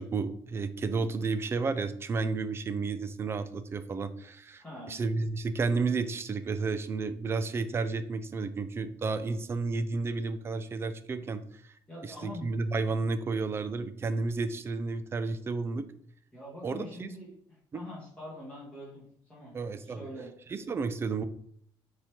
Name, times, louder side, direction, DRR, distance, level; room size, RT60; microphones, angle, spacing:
voice 1, 0.0-11.4 12.0-15.8 16.6-17.1 17.7-17.8 19.5-20.1 20.5-21.2, right 4 dB, 25° right, 12 dB, 0.5 m, -32 dB
voice 2, 4.6-5.0 11.9-12.5 16.3-17.3 17.7-19.0 19.3-19.5 19.8-20.3, left 1 dB, 10° left, -9 dB, 2.4 m, -43 dB
7.0 x 4.3 x 3.7 m, 0.63 s
cardioid pair, 135°, 9 cm